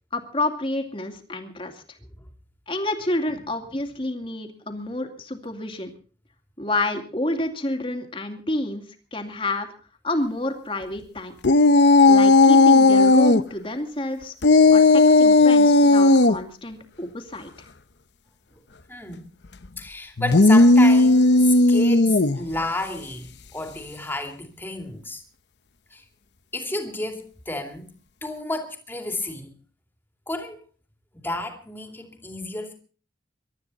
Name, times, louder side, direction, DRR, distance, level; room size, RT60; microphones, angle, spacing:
voice 1, 0.1-1.7 2.7-5.9 6.6-8.8 9.1-9.7 10.0-11.3 12.1-14.3 14.7-14.8 15.2-17.5, left 1 dB, 30° left, 2.4 m, -29 dB
sound 1, 11.4-13.4 14.4-16.4 20.2-22.4, left 2 dB, 70° left, 0.9 m, -14 dB
voice 2, 18.9-19.3 19.8-25.2 25.9-26.0 26.5-27.9 28.2-29.5 30.3-30.6 31.1-32.7, left 2 dB, 10° left, 2.6 m, -32 dB
23.0 x 12.5 x 4.2 m
head